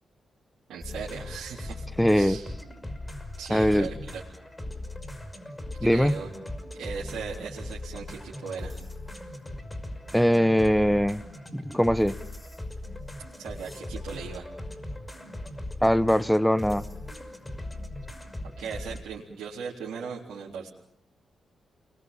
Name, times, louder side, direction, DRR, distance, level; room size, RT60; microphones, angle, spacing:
voice 1, 0.7-1.9 2.1-2.5 3.4-4.2 5.8-6.3 6.8-8.8 13.4-14.5 18.6-20.7, right 6 dB, 75° right, 3.8 m, -38 dB
sound 1, 0.8-19.0, left 1 dB, 20° left, 5.9 m, -39 dB
voice 2, 2.0-2.4 3.5-3.9 5.8-6.2 10.1-11.2 11.5-12.2 15.8-16.9, equal, 5° left, 1.2 m, -21 dB
30.0 x 22.5 x 7.4 m
hypercardioid pair, 40°, 0 cm